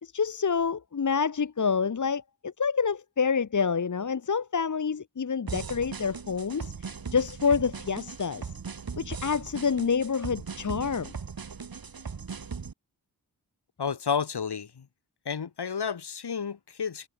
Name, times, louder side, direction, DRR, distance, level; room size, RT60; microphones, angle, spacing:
voice 1, 0.0-8.5 9.0-11.1, left 6 dB, 45° left, 1.4 m, -28 dB
sound 1, 5.5-12.7, right 5 dB, 60° right, 4.3 m, -39 dB
voice 2, 13.8-14.9 15.2-17.1, left 6 dB, 75° left, 4.6 m, -31 dB
wide cardioid pair, 80°, 40 cm